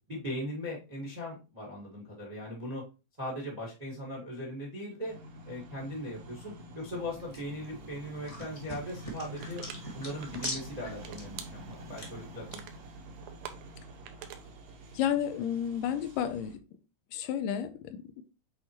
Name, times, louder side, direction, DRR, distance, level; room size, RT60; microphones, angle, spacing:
voice 1, 0.1-2.8 3.2-5.2 5.4-9.6 9.9-12.8, left 1 dB, 25° right, 0.8 m, -39 dB
sound 1, 5.0-16.6, right 1 dB, 60° right, 1.6 m, -47 dB
sound 2, 6.9-12.6, left 1 dB, 50° left, 0.4 m, -44 dB
sound 3, 9.4-9.8 10.2-10.5 10.9-11.9 12.3-12.8 13.2-14.5, right 10 dB, 80° right, 2.3 m, -44 dB
voice 2, 14.9-16.6 17.1-18.2, left 9 dB, 80° left, 2.2 m, -31 dB
8.1 x 4.3 x 3.0 m
omnidirectional pair, 4.0 m